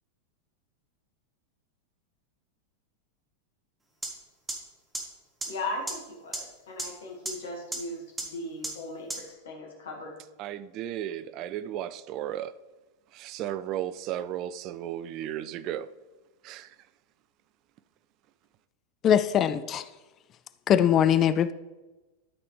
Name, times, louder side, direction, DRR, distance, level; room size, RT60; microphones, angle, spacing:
sound 1, 4.0-4.1 4.5-4.6 4.9-5.0 5.4-5.5 5.9-6.0 6.3-6.4 6.8-6.9 7.3-7.4 7.7-7.8 8.2-8.3 8.6-8.7 9.1-9.2, right 2 dB, 10° right, 1.5 m, -31 dB
voice 1, 5.5-10.1, left 2 dB, 60° left, 1.9 m, -38 dB
voice 2, 10.4-12.5 13.1-15.9 16.4-16.8, right 11 dB, 40° right, 0.4 m, -34 dB
voice 3, 19.0-19.8 20.7-21.5, left 9 dB, 30° left, 0.3 m, -21 dB
12.5 x 5.7 x 3.3 m
figure-of-eight pair, 90°, 0 cm